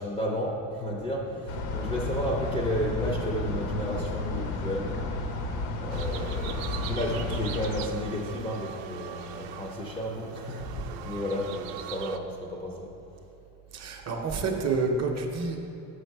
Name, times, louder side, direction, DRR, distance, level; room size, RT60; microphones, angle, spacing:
voice 1, 0.0-5.1 5.8-12.9, left 1 dB, 10° left, -3 dB, 0.3 m, -32 dB
sound 1, 1.5-7.9, left 2 dB, 85° left, 0.9 m, -32 dB
sound 2, 5.9-12.2, right 7 dB, 75° right, 0.6 m, -40 dB
voice 2, 13.7-15.6, right 4 dB, 35° right, 3 dB, 0.6 m, -28 dB
6.4 x 6.0 x 4.5 m, 2.8 s
cardioid pair, 145°, 48 cm